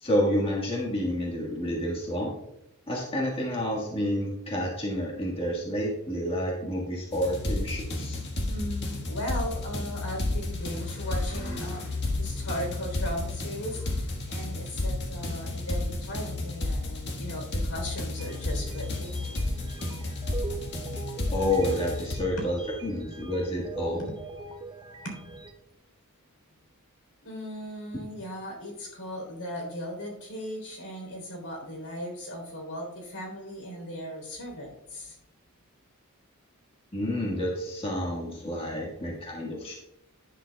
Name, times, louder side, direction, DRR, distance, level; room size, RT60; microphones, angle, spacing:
voice 1, 0.0-2.3 2.9-8.2 21.3-24.1 36.9-39.8, equal, 25° left, -2 dB, 1.6 m, -29 dB
sound 1, 7.1-22.2, left 2 dB, 50° left, 1.6 m, -32 dB
voice 2, 8.5-19.5 22.4-22.5 24.0-24.2 25.0-25.3 27.2-35.2, equal, 75° left, 1 dB, 3.6 m, -37 dB
sound 2, 18.2-25.5, right 3 dB, 20° right, 0.7 m, -42 dB
10.5 x 10.5 x 2.3 m, 0.82 s
head